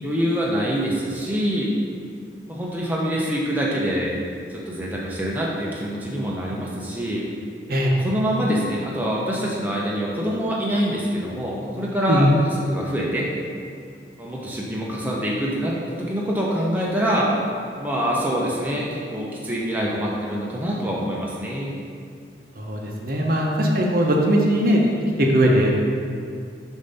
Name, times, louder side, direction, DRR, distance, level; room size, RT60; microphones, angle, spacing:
voice 1, 0.0-1.7 2.5-4.1 4.5-7.2 8.0-12.3 12.7-13.3 14.2-17.3 17.8-21.7, equal, 10° right, -5 dB, 0.6 m, -25 dB
voice 2, 22.5-24.9 25.2-25.7, equal, 50° right, 0 dB, 0.7 m, -19 dB
6.7 x 2.7 x 5.4 m, 2.3 s
head